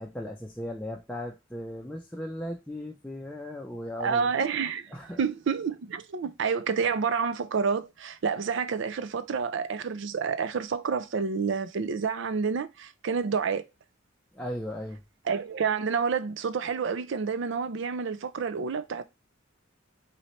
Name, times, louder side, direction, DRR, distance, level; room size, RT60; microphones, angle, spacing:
voice 1, 0.0-4.3 4.9-5.2 14.3-15.0, left 1 dB, 5° left, 0.6 m, -37 dB
voice 2, 4.0-13.6 15.3-19.0, right 5 dB, 65° right, 0.4 m, -29 dB
4.1 x 4.0 x 3.1 m
head